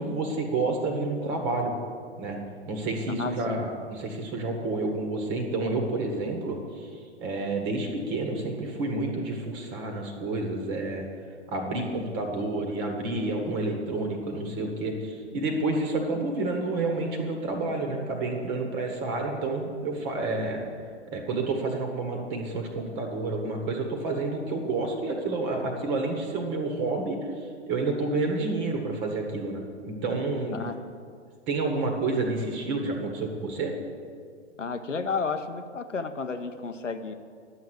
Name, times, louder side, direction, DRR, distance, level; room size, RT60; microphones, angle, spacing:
voice 1, 0.0-1.7 2.2-2.4 2.7-11.0 11.5-20.6 21.1-30.6 31.5-33.7, right 2 dB, 30° right, 3 dB, 1.6 m, -29 dB
voice 2, 3.2-3.7 30.5-30.8 34.6-37.1, left 4 dB, 85° left, 8 dB, 0.9 m, -32 dB
10.5 x 6.5 x 7.8 m, 2.1 s
figure-of-eight pair, 115°, 36 cm